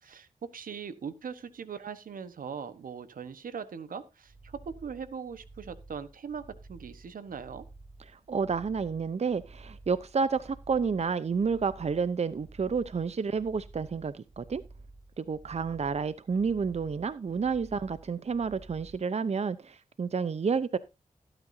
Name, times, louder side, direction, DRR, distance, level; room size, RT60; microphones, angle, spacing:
voice 1, 0.0-7.6, right 6 dB, 80° right, 12 dB, 1.1 m, -40 dB
sound 1, 4.2-19.0, right 2 dB, 65° right, 1.8 m, -52 dB
voice 2, 8.1-14.6 15.2-20.8, right 5 dB, 50° right, 15 dB, 0.6 m, -30 dB
16.0 x 9.0 x 2.7 m, 0.26 s
cardioid pair, 45°, 14 cm